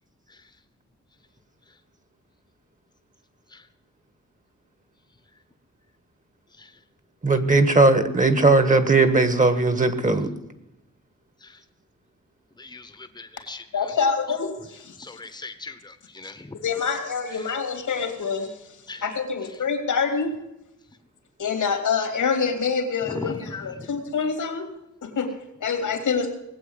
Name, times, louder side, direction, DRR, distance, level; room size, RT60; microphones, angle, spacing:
voice 1, 6.5-6.8 11.4-11.6 12.6-14.1 15.0-16.6 17.3-17.5 18.9-19.0 19.4-19.6 23.0-23.9, left 2 dB, 15° left, 8 dB, 1.1 m, -40 dB
voice 2, 7.2-10.3, right 3 dB, 25° right, 10 dB, 1.5 m, -18 dB
voice 3, 13.7-15.0 16.5-18.5 19.0-20.4 21.4-26.3, left 5 dB, 90° left, 5 dB, 2.9 m, -26 dB
19.5 x 8.3 x 8.1 m, 0.89 s
wide cardioid pair, 115°, 30 cm